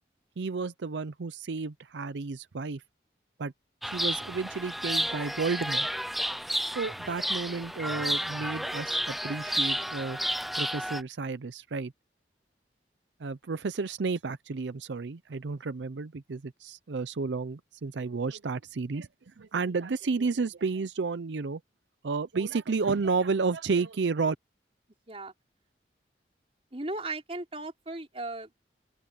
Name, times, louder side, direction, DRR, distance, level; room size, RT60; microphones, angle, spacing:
voice 1, 0.4-2.8 3.4-3.5 3.9-5.9 6.7-10.2 10.6-11.9 13.2-21.6 22.0-24.4, right 4 dB, 85° right, 0.6 m, -31 dB
Chirp tweet, 3.8-11.0, equal, ahead, 0.6 m, -31 dB
voice 2, 26.7-28.5, right 2 dB, 35° right, 4.0 m, -36 dB
open air
head